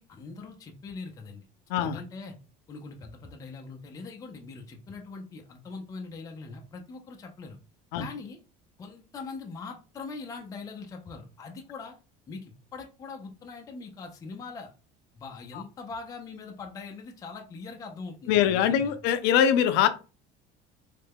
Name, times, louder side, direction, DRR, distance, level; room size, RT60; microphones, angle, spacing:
voice 1, 0.0-1.5 1.8-2.4 2.7-7.6 8.0-8.4 8.8-12.0 12.3-12.5 12.7-14.7 15.2-19.0, left 4 dB, 20° left, 2 dB, 0.4 m, -42 dB
voice 2, 1.7-2.0 7.9-8.0 15.5-15.6 18.3-19.9, left 9 dB, 70° left, 10 dB, 0.5 m, -23 dB
3.2 x 2.2 x 3.4 m, 0.33 s
cardioid pair, 150°, 18 cm